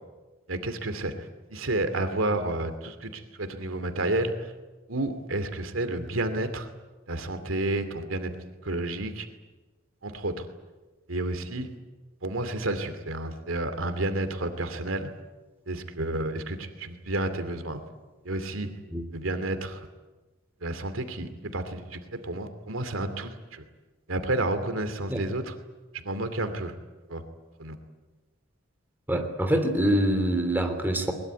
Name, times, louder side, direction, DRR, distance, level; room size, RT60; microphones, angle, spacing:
voice 1, 0.5-4.5 4.9-6.7 7.1-8.4 8.6-9.3 10.0-10.5 11.1-11.7 12.2-15.1 15.7-17.8 18.2-18.7 19.1-19.9 20.6-23.6 24.1-25.5 25.9-26.7 27.1-27.2 27.6-27.8, right 2 dB, 90° right, 8 dB, 2.6 m, -30 dB
voice 2, 29.1-31.1, right 1 dB, 10° right, 4 dB, 3.3 m, -25 dB
22.0 x 21.5 x 9.4 m, 1.2 s
head